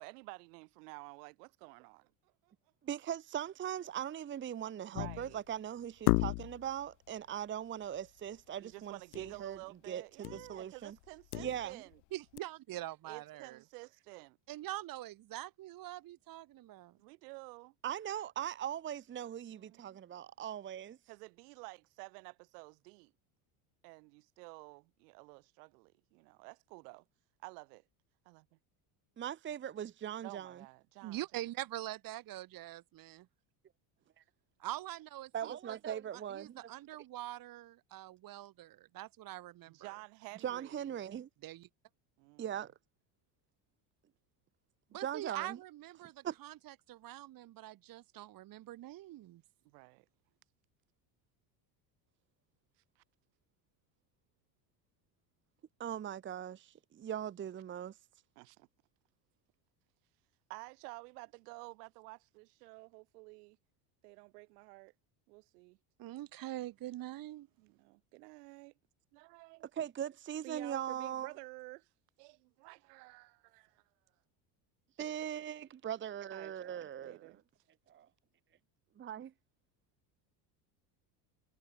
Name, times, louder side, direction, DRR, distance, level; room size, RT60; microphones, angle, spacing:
voice 1, 0.0-2.5 4.9-5.4 6.4-6.5 8.5-12.0 13.0-14.4 16.9-17.7 19.5-20.0 21.1-23.1 23.8-27.0 27.4-27.8 28.2-28.6 30.2-31.2 39.7-40.9 42.2-42.7 49.6-50.1 53.0-53.1 58.4-58.7 60.5-63.6 64.0-64.9 65.3-65.8 67.6-68.7 69.1-69.7 70.4-71.9 72.2-73.8 76.3-77.4, right 27 dB, 90° right, 4.2 m, -52 dB
voice 2, 2.8-9.6 9.9-10.9 11.4-11.8 17.8-21.0 29.2-30.6 35.3-36.6 40.4-41.3 42.4-42.7 45.0-45.6 46.2-46.3 55.8-57.9 69.8-71.3 75.0-77.4 77.9-78.1 79.0-79.3, right 10 dB, 25° right, 0.9 m, -40 dB
sound 1, 4.9-5.4 6.1-6.7 9.1-9.4 9.6-9.7 10.2-10.6 11.0-11.9 12.4-12.5, left 37 dB, 85° left, 0.5 m, -33 dB
voice 3, 12.1-13.6 14.5-17.0 31.0-33.3 34.6-35.8 36.3-39.8 41.4-41.7 44.9-49.4 66.0-67.5, right 15 dB, 45° right, 2.1 m, -44 dB
cardioid pair, 130°, 46 cm